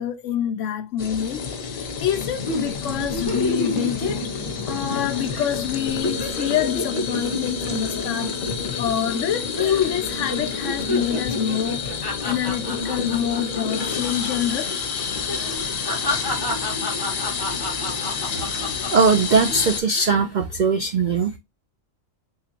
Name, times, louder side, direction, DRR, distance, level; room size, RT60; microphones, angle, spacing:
voice 1, 0.0-4.3 4.7-8.3 8.8-11.9 12.2-14.8 18.5-18.9, left 9 dB, 70° left, 0.9 m, -26 dB
sound 1, 1.0-19.8, left 5 dB, 85° left, 1.3 m, -29 dB
sound 2, 2.5-5.0 5.3-5.5 5.8-9.3 9.6-10.0 10.3-14.4 14.6-14.8 15.3-19.4 19.8-20.3, left 1 dB, 20° left, 1.1 m, -30 dB
voice 2, 18.9-21.4, right 4 dB, 65° right, 0.4 m, -19 dB
3.7 x 3.5 x 2.8 m
omnidirectional pair, 1.4 m